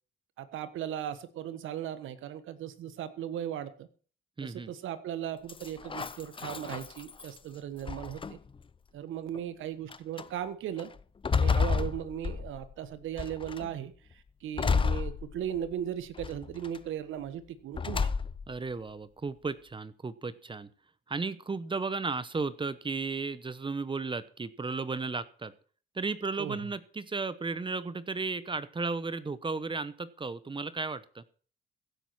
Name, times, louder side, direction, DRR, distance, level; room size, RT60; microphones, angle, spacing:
voice 1, 0.4-3.9 4.4-8.4 8.9-10.9 11.3-13.9 14.4-18.1 26.4-26.6, right 10 dB, 80° right, 13 dB, 1.5 m, -37 dB
voice 2, 4.4-4.7 18.5-20.7 21.1-25.5 25.9-31.2, right 4 dB, 25° right, 15 dB, 1.0 m, -34 dB
sound 1, 5.5-7.4 7.9-8.6 9.3-9.4 9.9-10.3 10.8-12.7 13.2-13.7 14.6-15.7 16.2-16.8 17.7-18.6, left 5 dB, 25° left, 0.7 m, -31 dB
16.0 x 8.3 x 6.0 m, 0.42 s
cardioid pair, 90°, 20 cm